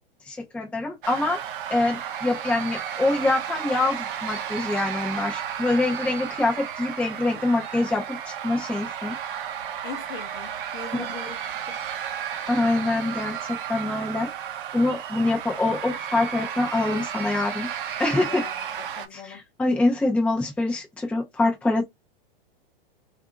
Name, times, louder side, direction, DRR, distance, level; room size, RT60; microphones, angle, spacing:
voice 1, 0.3-1.4 1.7-9.2 10.9-11.0 12.5-14.3 14.7-17.7 18.0-18.4 19.1-21.8, left 2 dB, 5° left, 0.5 m, -25 dB
sound 1, 1.0-19.1, right 9 dB, 60° right, 0.7 m, -33 dB
voice 2, 9.8-11.4 11.7-11.8 18.2-18.5 18.9-19.4, left 7 dB, 35° left, 0.8 m, -39 dB
2.6 x 2.5 x 2.4 m
hypercardioid pair, 105°, 29 cm